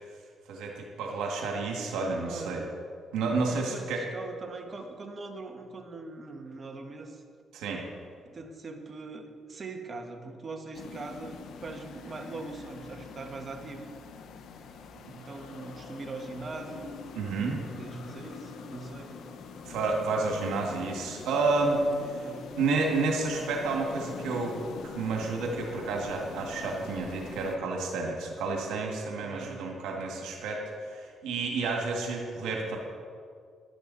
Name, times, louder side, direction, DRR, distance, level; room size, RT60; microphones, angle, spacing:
voice 1, 0.5-2.6 3.1-4.0 7.5-7.8 17.2-17.6 19.7-21.8 22.6-24.5 24.9-32.8, right 3 dB, 90° right, 0 dB, 2.0 m, -30 dB
voice 2, 2.2-2.7 3.5-7.2 8.2-13.9 15.1-16.9 17.2-19.2 22.1-22.5 29.2-29.6, right 3 dB, 40° right, 4 dB, 1.6 m, -42 dB
sound 1, 10.7-27.6, left 5 dB, 75° left, 1.0 m, -44 dB
14.0 x 11.5 x 4.2 m, 2.1 s
cardioid pair, 90°, 0 cm